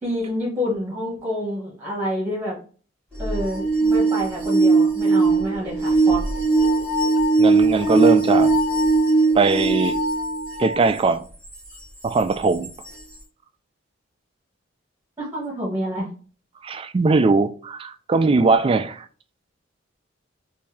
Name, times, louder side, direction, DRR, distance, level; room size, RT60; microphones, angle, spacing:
voice 1, 0.0-2.6 3.2-6.2 15.2-16.1, equal, 15° right, 1.4 m, -28 dB
sound 1, 3.2-10.8 11.5-11.6 12.6-12.7, right 3 dB, 5° left, 1.9 m, -19 dB
voice 2, 7.4-8.5 9.3-10.0 10.6-11.2 12.0-12.7 16.6-19.1, right 3 dB, 30° right, 0.3 m, -20 dB
3.3 x 2.7 x 3.3 m
head